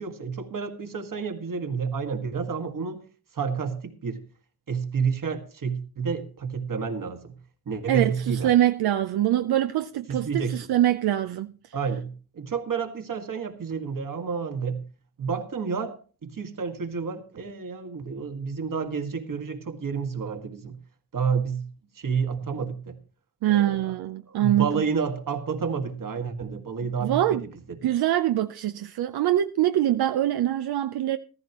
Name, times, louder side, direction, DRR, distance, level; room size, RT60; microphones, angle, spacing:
voice 1, 0.0-3.0 3.3-4.2 4.7-7.4 7.7-8.5 10.1-10.6 11.7-14.8 15.2-20.8 21.1-21.7 22.0-23.0 23.5-23.9 24.3-27.4, right 5 dB, 60° right, 1.8 m, -30 dB
voice 2, 7.9-11.5 23.4-24.8 27.0-27.4 27.8-31.2, right 12 dB, 90° right, 0.6 m, -24 dB
14.5 x 14.0 x 3.0 m
cardioid pair, 65°, 37 cm